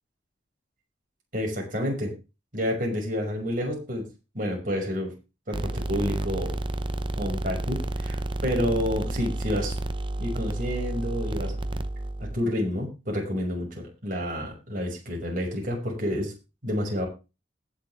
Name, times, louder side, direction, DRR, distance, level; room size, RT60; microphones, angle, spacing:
voice 1, 1.3-2.1 2.5-4.1 4.3-5.1 5.5-6.6 7.2-8.2 8.4-9.8 10.2-11.6 12.2-16.3 16.6-17.1, equal, 45° right, 0 dB, 6.1 m, -29 dB
sound 1, 5.5-12.4, right 1 dB, 25° right, 0.8 m, -30 dB
20.5 x 6.8 x 3.5 m, 0.29 s
head